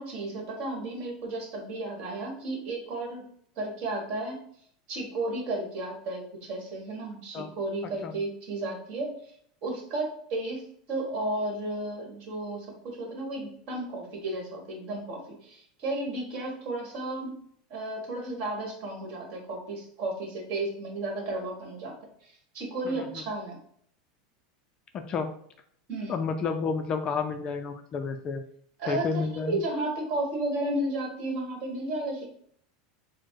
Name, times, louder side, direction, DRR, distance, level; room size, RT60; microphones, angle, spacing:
voice 1, 0.0-3.3 3.6-4.4 4.9-9.3 9.6-10.6 10.9-17.4 17.7-21.9 22.2-23.6 25.9-26.2 28.8-32.3, right 2 dB, 45° right, 1 dB, 1.5 m, -33 dB
voice 2, 24.9-25.3 26.1-28.4 28.9-29.6, left 5 dB, 30° left, 7 dB, 0.4 m, -30 dB
4.3 x 2.0 x 4.5 m, 0.64 s
supercardioid pair, 150°, 3 cm